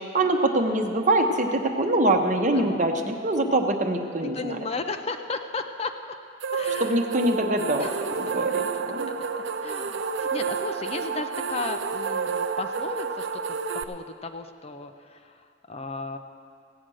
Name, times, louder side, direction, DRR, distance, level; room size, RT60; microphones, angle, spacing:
voice 1, 0.1-4.6 6.8-7.9 8.2-9.1, right 1 dB, 40° right, 4 dB, 1.0 m, -24 dB
voice 2, 2.3-2.8 4.2-5.9 6.5-7.0 7.8-13.6 13.9-16.2, left 3 dB, 35° left, 7 dB, 0.5 m, -35 dB
sound 1, 6.4-13.8, right 5 dB, 80° right, 0.6 m, -30 dB
16.5 x 8.9 x 6.3 m, 2.4 s
head